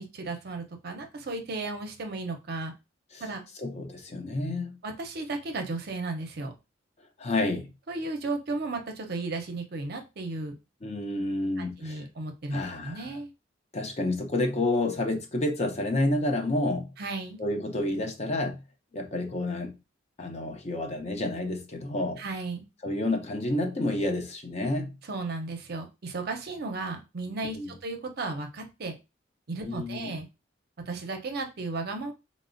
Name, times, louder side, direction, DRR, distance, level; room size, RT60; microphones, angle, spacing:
voice 1, 0.0-2.7 3.2-3.4 4.8-6.5 7.9-10.5 11.6-13.3 17.0-17.4 22.2-22.6 25.1-28.9 29.5-30.3 30.9-32.1, right 3 dB, 55° right, 0.6 m, -34 dB
voice 2, 3.6-4.8 7.2-7.7 10.8-12.1 12.5-13.2 13.7-16.9 17.4-18.6 18.9-19.8 20.2-22.2 22.8-24.9 27.5-27.7 29.6-30.2, left 2 dB, 35° left, 0.5 m, -29 dB
4.1 x 2.0 x 2.4 m
head